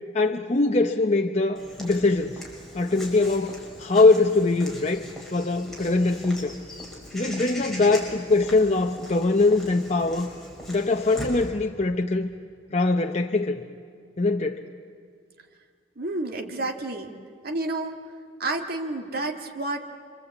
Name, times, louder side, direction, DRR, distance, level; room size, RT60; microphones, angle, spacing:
voice 1, 0.1-2.4 2.7-5.1 5.3-6.6 7.1-10.3 10.7-12.3 12.7-13.6 14.2-14.6, left 3 dB, 35° left, 3 dB, 0.8 m, -22 dB
Walk footsteps / Bird vocalization bird call bird song, 1.6-11.5, left 1 dB, ahead, 5.5 m, -41 dB
voice 2, 16.0-17.1 17.4-18.0 18.4-19.8, right 2 dB, 55° right, 2 dB, 2.0 m, -30 dB
26.5 x 26.0 x 8.3 m, 2.1 s
head